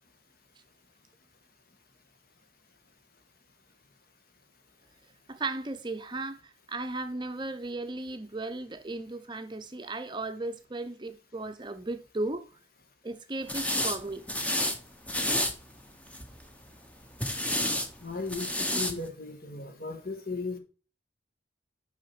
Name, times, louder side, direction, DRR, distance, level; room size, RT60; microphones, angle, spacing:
voice 1, 5.3-12.4 13.0-14.2, right 2 dB, 25° right, 0.7 m, -36 dB
sound 1, 13.5-14.0 14.3-14.8 15.1-15.5 16.1-16.4 17.2-17.9 18.3-18.9, left 1 dB, 5° left, 0.8 m, -29 dB
voice 2, 18.0-20.6, left 3 dB, 50° left, 1.4 m, -36 dB
6.1 x 5.7 x 6.0 m
head